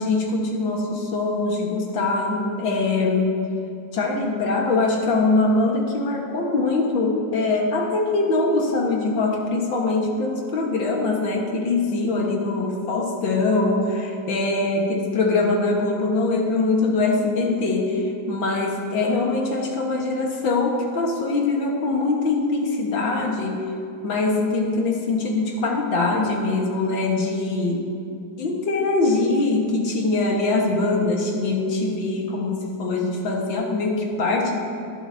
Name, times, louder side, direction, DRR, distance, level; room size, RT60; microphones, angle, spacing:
voice 1, 0.0-3.4 3.9-23.6 24.0-27.9 28.4-34.6, left 3 dB, 85° left, 0 dB, 2.2 m, -23 dB
18.5 x 11.0 x 2.8 m, 2.7 s
omnidirectional pair, 2.0 m